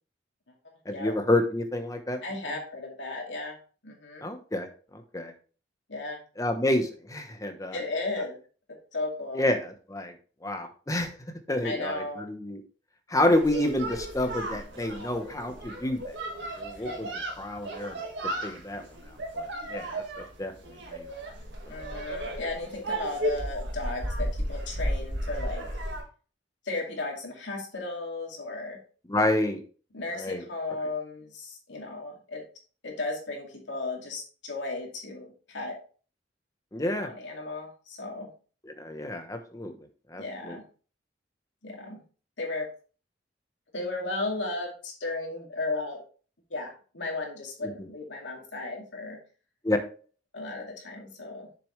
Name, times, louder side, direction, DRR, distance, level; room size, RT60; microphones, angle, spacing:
voice 1, 0.9-2.2 2.5-2.6 4.2-4.7 4.9-5.3 6.4-7.8 9.3-10.1 10.4-11.2 11.5-12.6 13.1-16.0 16.4-17.1 17.4-18.0 18.4-18.8 19.3-21.1 29.1-29.6 30.2-30.4 36.7-37.1 38.7-39.7 40.1-40.6 47.6-47.7 49.6-49.8, left 1 dB, 20° left, 6 dB, 1.0 m, -29 dB
voice 2, 2.2-3.6 3.8-4.3 5.9-6.2 7.7-8.4 8.9-9.4 11.6-12.2 16.8-17.2 21.7-25.7 26.6-28.8 29.9-32.4 32.8-35.7 36.8-38.3 40.1-40.6 41.6-42.0 42.4-42.7 43.7-46.0 46.5-49.2 50.3-51.5, left 2 dB, 80° left, 0 dB, 2.4 m, -35 dB
sound 1, 13.3-26.0, right 1 dB, 70° right, 1.8 m, -34 dB
6.9 x 6.7 x 3.2 m, 0.39 s
head